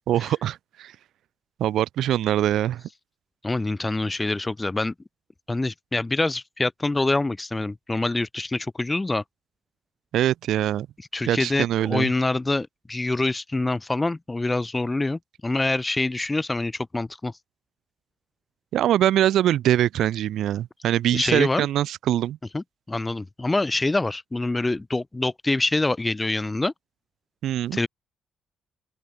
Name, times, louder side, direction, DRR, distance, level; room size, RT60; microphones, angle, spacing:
voice 1, 0.1-0.9 1.6-2.8 10.1-10.9 11.3-12.1 18.7-22.4 27.4-27.8, right 12 dB, 75° right, 1.3 m, -23 dB
voice 2, 3.4-4.9 5.5-9.2 11.1-17.3 21.1-21.7 22.5-26.7 27.7-27.9, left 2 dB, 15° left, 7.3 m, -25 dB
open air
cardioid pair, 90°, 0 cm